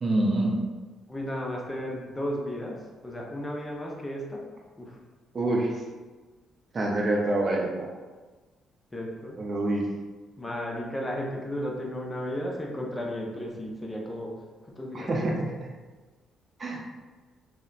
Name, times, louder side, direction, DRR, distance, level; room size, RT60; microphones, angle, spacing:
voice 1, 0.0-0.6 5.3-5.7 6.7-7.9 9.4-9.9 14.9-15.7 16.6-16.8, right 2 dB, 40° right, -2 dB, 0.4 m, -26 dB
voice 2, 1.1-2.8 3.0-4.4 4.8-4.9 8.9-9.4 10.4-14.3 14.8-15.3, equal, 20° left, -1 dB, 0.5 m, -34 dB
2.8 x 2.1 x 2.3 m, 1.3 s
cardioid pair, 90°, 0 cm